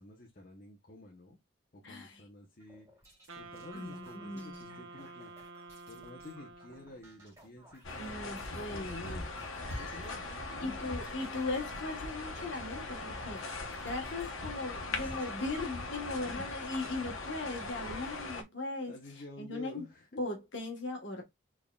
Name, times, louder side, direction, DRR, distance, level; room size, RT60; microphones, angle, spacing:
voice 1, 0.0-1.4 1.7-2.9 3.4-5.3 5.9-9.3 9.6-10.8 16.2-16.6 18.0-18.1 18.8-20.2, left 1 dB, 45° left, 0.8 m, -50 dB
voice 2, 1.8-2.2 3.7-4.8 8.0-9.1 10.6-13.5 13.8-18.9 19.4-19.8 20.2-21.2, left 2 dB, 65° left, 1.3 m, -38 dB
sound 1, 2.6-15.4 16.1-16.7 17.2-17.3 17.6-18.3, right 1 dB, 15° right, 2.8 m, -60 dB
Wind instrument woodwind instrument, 3.3-7.1, right 3 dB, 75° right, 0.7 m, -50 dB
sound 2, 7.8-18.4, left 3 dB, 85° left, 1.1 m, -40 dB
4.3 x 3.6 x 2.3 m
head